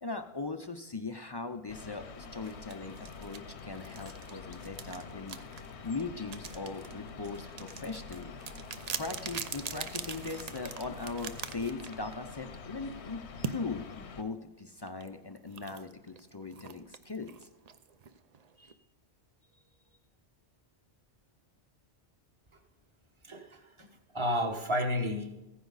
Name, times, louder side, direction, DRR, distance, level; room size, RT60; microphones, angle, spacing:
voice 1, 0.0-5.4 5.8-8.4 9.0-17.5 18.6-18.7, left 3 dB, 40° left, 8 dB, 0.3 m, -40 dB
sound 1, 1.7-14.2, left 5 dB, 80° left, 1.1 m, -46 dB
sound 2, 2.4-12.3 13.4-13.6 14.9-18.7, right 7 dB, 45° right, 0.6 m, -43 dB
voice 2, 23.2-23.9 24.1-25.4, left 1 dB, 25° right, 5 dB, 1.2 m, -31 dB
15.5 x 9.9 x 4.0 m, 0.99 s
omnidirectional pair, 1.1 m